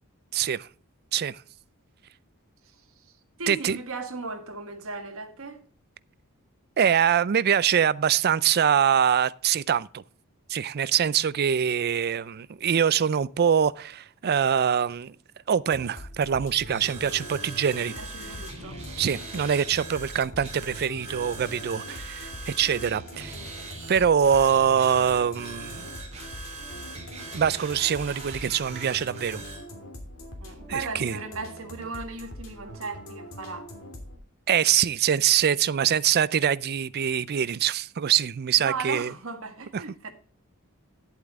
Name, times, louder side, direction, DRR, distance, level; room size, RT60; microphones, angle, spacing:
voice 1, 0.3-0.7 1.1-1.4 3.5-3.8 6.8-10.0 10.5-15.1 15.5-17.9 19.0-23.4 23.9-25.9 27.3-29.4 30.7-31.2 34.5-39.1 39.7-39.8, right 8 dB, 50° right, 0.4 m, -24 dB
voice 2, 3.4-5.6 17.9-18.8 30.4-33.7 38.6-40.1, right 4 dB, 65° right, 1.7 m, -36 dB
sound 1, 15.7-34.2, left 1 dB, 65° left, 2.9 m, -43 dB
sound 2, 16.6-29.6, right 3 dB, 30° right, 2.9 m, -41 dB
11.0 x 8.1 x 3.6 m
head